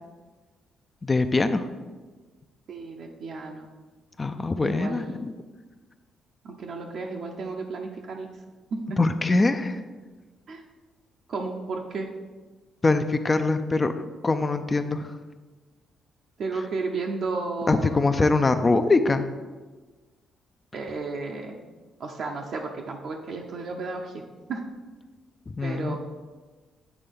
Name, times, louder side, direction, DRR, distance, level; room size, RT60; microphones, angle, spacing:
voice 1, 1.0-1.7 4.2-5.3 9.0-9.8 12.8-13.9 14.2-15.2 17.7-19.2 25.5-26.0, left 3 dB, 25° left, 8 dB, 0.4 m, -23 dB
voice 2, 2.7-3.7 4.6-5.2 6.4-8.3 8.7-9.0 10.5-10.6 11.3-12.1 16.4-18.0 20.7-21.6 22.0-24.2 24.5-24.6 25.6-26.0, right 3 dB, 65° right, 0 dB, 0.7 m, -33 dB
8.2 x 3.4 x 5.3 m, 1.3 s
cardioid pair, 90°, 0 cm